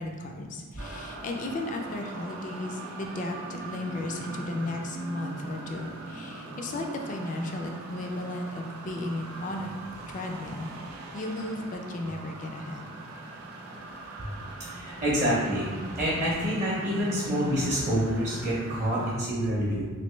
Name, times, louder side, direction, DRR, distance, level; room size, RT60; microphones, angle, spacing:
voice 1, 0.0-9.7 10.1-10.7 11.1-12.9, left 1 dB, 35° left, 2 dB, 0.3 m, -35 dB
sound 1, 0.8-19.1, right 2 dB, 90° right, 0.5 m, -40 dB
voice 2, 14.7-15.7 16.0-19.9, equal, 35° right, -6 dB, 0.6 m, -27 dB
3.2 x 2.6 x 3.0 m, 1.4 s
head